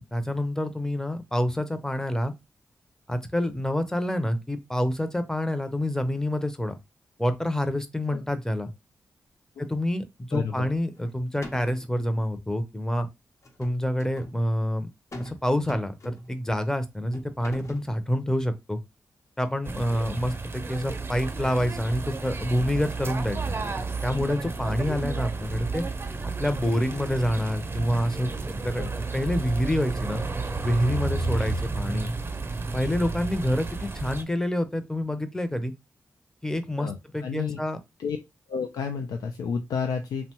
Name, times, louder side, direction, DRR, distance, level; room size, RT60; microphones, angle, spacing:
voice 1, 0.0-2.3 3.1-6.7 7.2-8.7 9.6-13.1 13.6-14.9 15.2-18.8 19.4-23.4 24.0-25.8 26.4-30.2 30.6-32.1 32.7-35.7 36.4-37.8, left 1 dB, 10° left, 0.6 m, -27 dB
voice 2, 10.3-10.7 28.8-28.9 36.8-37.6 38.0-38.2 38.5-40.3, left 6 dB, 85° left, 0.3 m, -31 dB
sound 1, 11.0-11.1 11.4-12.0 13.4-14.4 15.1-15.4 15.7-16.4 17.1-17.9, equal, 50° left, 0.8 m, -39 dB
sound 2, 19.6-34.2, right 3 dB, 40° right, 0.6 m, -32 dB
2.9 x 2.1 x 2.9 m
supercardioid pair, 40°, 6 cm